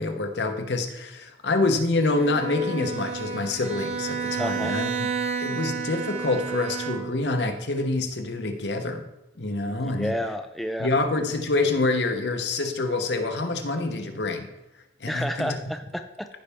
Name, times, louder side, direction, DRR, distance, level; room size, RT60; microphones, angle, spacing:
voice 1, 0.0-5.1 5.4-9.0 9.4-10.1 10.8-14.5 15.0-15.6, left 2 dB, 70° left, 6 dB, 1.0 m, -26 dB
Bowed string instrument, 2.1-7.4, right 5 dB, 35° right, 1.1 m, -31 dB
voice 2, 4.4-4.8 9.7-10.9 15.1-16.3, equal, ahead, 6 dB, 0.4 m, -31 dB
14.5 x 5.6 x 3.5 m, 0.92 s
head